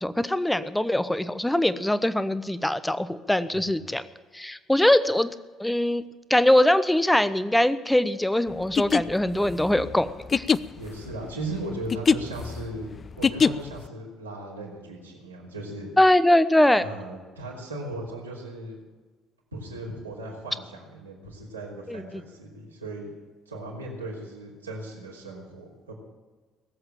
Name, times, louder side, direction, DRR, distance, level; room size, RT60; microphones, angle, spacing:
voice 1, 0.0-4.0 4.3-5.3 5.6-6.0 6.3-10.5 16.0-16.8 21.9-22.0, left 1 dB, 5° left, 14 dB, 0.9 m, -22 dB
sound 1, 8.6-13.9, left 5 dB, 35° left, 0.4 m, -24 dB
voice 2, 10.8-15.9 16.8-18.8 19.5-23.1 23.5-25.9, right 1 dB, 90° right, -4 dB, 3.2 m, -37 dB
19.0 x 8.0 x 9.0 m, 1.4 s
figure-of-eight pair, 50°, 0 cm